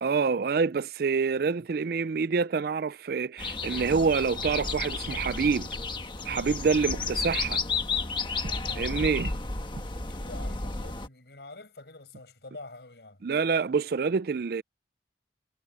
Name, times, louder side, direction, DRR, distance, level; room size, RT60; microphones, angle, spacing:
voice 1, 0.0-5.7 6.3-7.6 8.8-9.3 13.2-14.6, right 5 dB, 55° right, 0.4 m, -27 dB
sound 1, 3.4-11.1, left 4 dB, 25° left, 1.4 m, -32 dB
voice 2, 8.4-13.2, left 2 dB, 65° left, 5.5 m, -47 dB
head